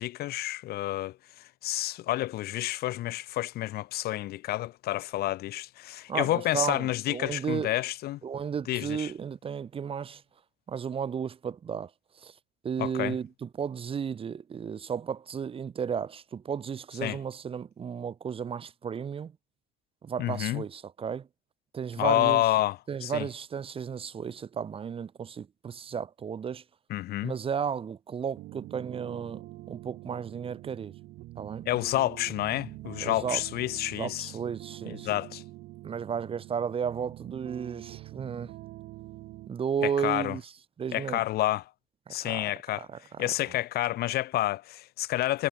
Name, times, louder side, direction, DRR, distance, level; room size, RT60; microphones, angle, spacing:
voice 1, 0.0-8.2 8.7-9.1 12.8-13.2 17.0-17.2 20.2-20.6 22.0-23.3 26.9-27.3 31.7-34.3 34.9-35.4 39.8-40.4 40.9-41.6 42.1-42.9 43.2-45.5, left 15 dB, 70° left, 0.7 m, -29 dB
voice 2, 6.1-7.7 8.2-10.2 10.7-11.9 12.2-12.3 12.6-19.3 20.0-21.3 21.7-22.4 22.9-26.6 27.2-29.4 29.7-30.9 31.4-31.6 33.0-33.4 33.9-35.1 35.8-38.5 39.5-40.4 40.8-41.2 42.1-43.2, right 7 dB, 35° right, 0.7 m, -34 dB
sound 1, 28.4-39.5, right 17 dB, 80° right, 2.5 m, -45 dB
cardioid pair, 110°, 17 cm